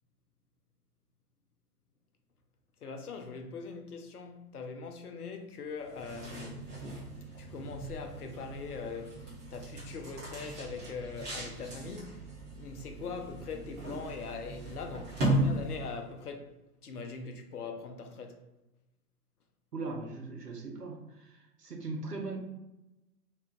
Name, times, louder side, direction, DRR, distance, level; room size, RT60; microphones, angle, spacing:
voice 1, 2.8-6.7 7.4-12.3 12.6-18.4, left 4 dB, 75° left, 0.6 m, -42 dB
sound 1, 5.8-16.1, right 1 dB, 15° right, 0.6 m, -37 dB
voice 2, 19.7-22.4, right 3 dB, 85° right, 0.7 m, -39 dB
2.5 x 2.2 x 3.6 m
figure-of-eight pair, 115°, 47 cm